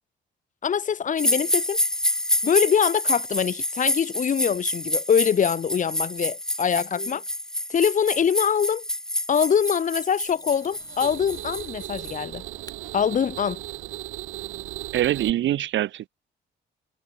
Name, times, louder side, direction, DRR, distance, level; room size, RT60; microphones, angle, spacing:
voice 1, 0.6-1.8 2.4-7.2 7.7-8.8 9.3-12.4 12.9-13.6, left 7 dB, 40° left, 0.7 m, -23 dB
sound 1, 1.2-12.1, left 1 dB, 5° left, 0.3 m, -28 dB
Mechanisms, 9.6-10.8 11.9-12.3 12.6-12.8 15.6-15.7, left 3 dB, 20° left, 3.2 m, -51 dB
sound 2, 10.5-15.3, right 16 dB, 90° right, 1.6 m, -37 dB
voice 2, 14.9-16.1, right 13 dB, 70° right, 0.8 m, -24 dB
cardioid pair, 90°, 20 cm